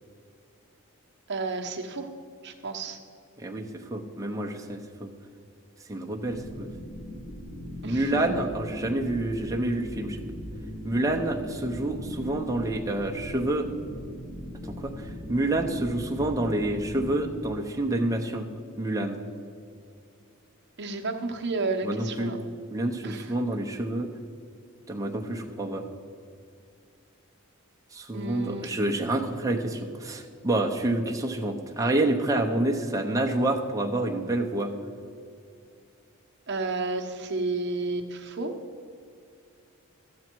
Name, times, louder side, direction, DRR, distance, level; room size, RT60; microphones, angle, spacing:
voice 1, 1.3-2.1 2.4-3.0 7.8-8.2 20.8-22.4 23.0-23.3 28.1-28.7 36.5-38.6, right 3 dB, 50° right, 4 dB, 0.9 m, -31 dB
voice 2, 3.4-5.1 5.9-6.7 7.8-10.2 10.8-13.7 14.6-18.5 18.8-19.2 21.8-22.3 22.7-24.1 24.9-25.8 27.9-34.7, right 1 dB, 15° right, 1 dB, 0.8 m, -28 dB
sound 1, 6.3-17.3, left 1 dB, 60° left, 1.6 m, -40 dB
12.5 x 8.5 x 4.5 m, 2.4 s
head